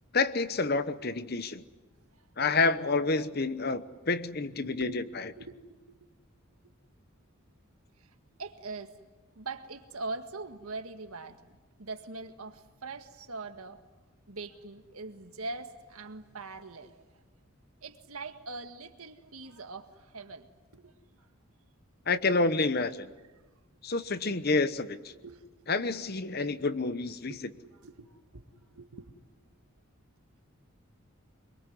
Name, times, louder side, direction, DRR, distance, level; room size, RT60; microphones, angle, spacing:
voice 1, 0.1-1.6 2.4-5.0 22.1-23.1 23.8-25.0 25.7-27.4, left 3 dB, 45° left, 13 dB, 1.0 m, -28 dB
voice 2, 4.5-6.1 8.4-8.9 9.4-13.8 14.3-17.1 17.8-20.5 20.7-21.3 25.1-25.4 27.3-29.1, right 3 dB, 90° right, 7 dB, 1.8 m, -43 dB
25.5 x 23.0 x 9.6 m, 1.2 s
head